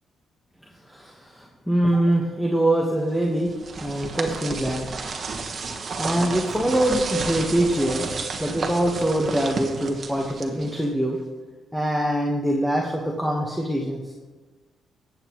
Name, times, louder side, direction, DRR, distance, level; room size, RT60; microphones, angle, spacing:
voice 1, 0.9-3.5 3.8-4.9 6.0-8.0 8.4-11.2 11.7-14.0, right 1 dB, ahead, -2 dB, 1.3 m, -23 dB
sound 1, 3.2-11.0, right 4 dB, 45° right, 1.3 m, -31 dB
19.5 x 8.3 x 3.1 m, 1.3 s
cardioid pair, 105°, 0 cm